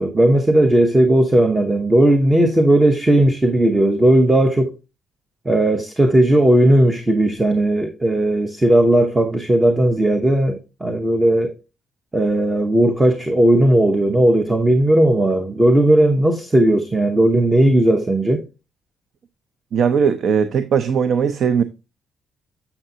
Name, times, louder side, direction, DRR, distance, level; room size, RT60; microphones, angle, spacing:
voice 1, 0.0-4.7 5.4-11.6 12.1-18.4, right 1 dB, 15° right, 0.9 m, -16 dB
voice 2, 19.7-21.6, right 7 dB, 65° right, 0.6 m, -18 dB
7.2 x 7.0 x 2.7 m
cardioid pair, 90°, 0 cm